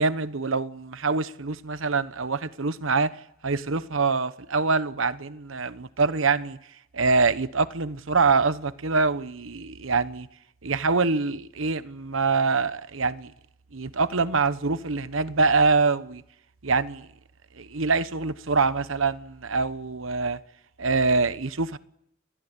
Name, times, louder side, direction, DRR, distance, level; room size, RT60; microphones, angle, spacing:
voice 1, 0.0-3.1 3.4-6.6 6.9-10.3 10.6-13.3 13.7-16.2 16.6-17.1 17.5-20.4 20.8-21.8, right 4 dB, 70° right, 1.1 m, -25 dB
28.5 x 21.0 x 8.3 m
head